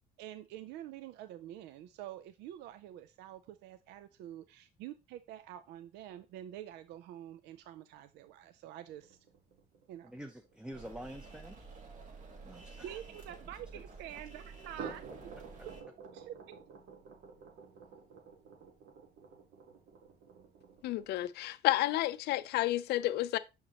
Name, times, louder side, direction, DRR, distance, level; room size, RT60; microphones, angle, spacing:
voice 1, 0.2-9.2 9.9-10.1 12.8-15.0 15.7-15.8 16.1-16.4, right 12 dB, 85° right, 0.5 m, -47 dB
sound 1, 8.9-13.4 14.6-21.3, right 6 dB, 70° right, 1.5 m, -51 dB
voice 2, 10.0-11.6 12.4-13.0 13.7-13.8, equal, 5° right, 0.6 m, -47 dB
sound 2, 10.7-15.8, right 4 dB, 50° right, 1.7 m, -51 dB
voice 3, 20.8-23.4, left 15 dB, 75° left, 0.5 m, -31 dB
6.6 x 6.0 x 2.9 m
cardioid pair, 110°, 17 cm